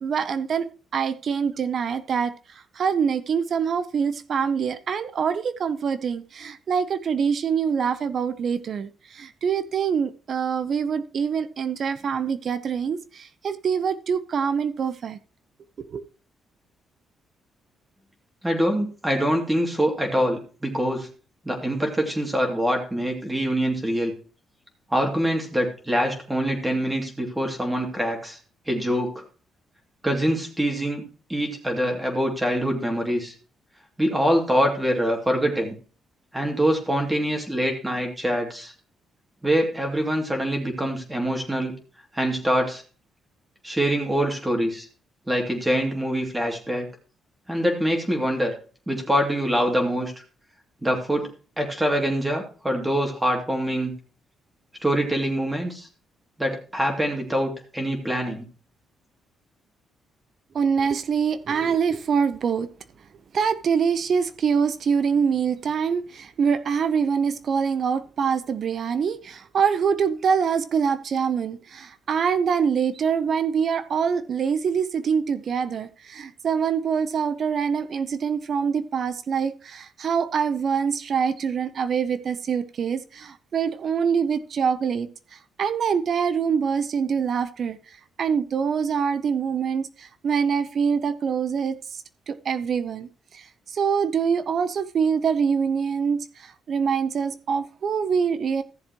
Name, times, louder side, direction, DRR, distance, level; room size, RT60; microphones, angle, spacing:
voice 1, 0.0-15.2 15.9-16.0 60.5-62.7 63.3-87.8 88.2-98.6, right 6 dB, 55° right, 0.8 m, -25 dB
voice 2, 18.4-21.1 21.4-24.1 24.9-28.4 28.7-29.2 30.0-31.0 31.3-33.3 34.0-35.7 36.3-38.7 39.4-41.8 42.1-42.8 43.6-44.9 45.3-46.9 47.5-48.5 48.9-50.1 50.8-54.0 54.8-55.9 56.4-58.4, equal, 10° right, 2.7 m, -24 dB
14.5 x 7.2 x 3.0 m
cardioid pair, 90°, 0 cm